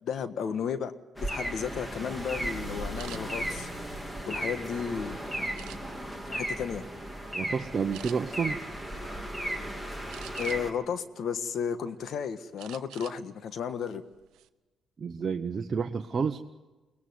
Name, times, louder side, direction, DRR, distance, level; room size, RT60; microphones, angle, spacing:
voice 1, 0.0-3.7 4.3-5.2 6.3-6.8 10.4-14.0, left 7 dB, 65° left, 11 dB, 1.5 m, -33 dB
sound 1, 1.2-10.7, right 1 dB, 10° left, 2.9 m, -35 dB
sound 2, 3.0-3.2 3.8-4.8 5.5-6.1 6.7-6.9 7.2-7.4 7.9-8.2 10.1-10.8 11.3-12.0 12.6-13.2 13.5-13.7 14.1-14.5, right 14 dB, 90° right, 0.9 m, -47 dB
voice 2, 7.3-8.6 15.0-16.4, right 5 dB, 40° right, 4 dB, 1.0 m, -30 dB
22.5 x 19.0 x 9.6 m, 1.2 s
cardioid pair, 90°, 0 cm